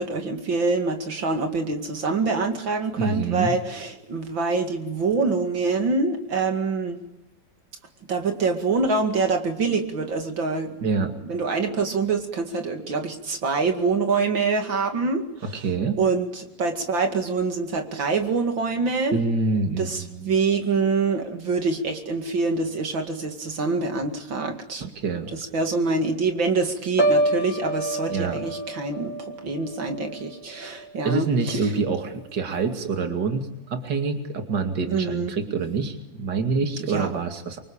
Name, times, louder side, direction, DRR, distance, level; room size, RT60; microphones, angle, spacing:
voice 1, 0.0-7.0 8.1-10.7 11.2-15.6 16.0-19.2 19.8-24.9 25.3-31.7 34.9-35.3 36.9-37.1, right 4 dB, 75° right, 5 dB, 3.0 m, -25 dB
voice 2, 3.0-3.5 10.8-11.1 15.5-16.0 19.1-20.3 24.8-25.3 28.1-28.4 31.0-37.6, right 4 dB, 60° right, 6 dB, 3.0 m, -26 dB
Piano, 27.0-30.9 31.3-31.7, right 1 dB, 40° left, 3.7 m, -27 dB
27.5 x 24.5 x 8.8 m, 0.87 s
omnidirectional pair, 2.1 m